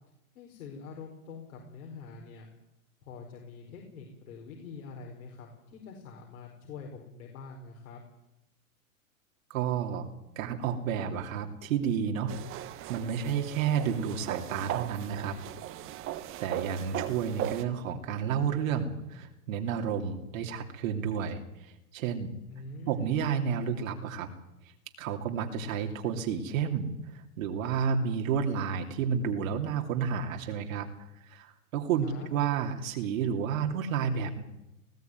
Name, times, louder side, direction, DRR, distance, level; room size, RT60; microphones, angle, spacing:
voice 1, 0.3-2.5 3.0-8.0 22.5-23.2 32.0-32.3, left 4 dB, 65° left, 1 dB, 4.8 m, -45 dB
voice 2, 9.5-10.1 10.4-12.3 12.9-15.4 16.4-22.3 22.9-24.3 25.0-34.4, right 7 dB, 60° right, 4 dB, 2.9 m, -31 dB
sound 1, 12.3-17.6, right 13 dB, 30° right, 1.3 m, -38 dB
20.0 x 14.5 x 9.4 m, 0.90 s
hypercardioid pair, 130°, 45 cm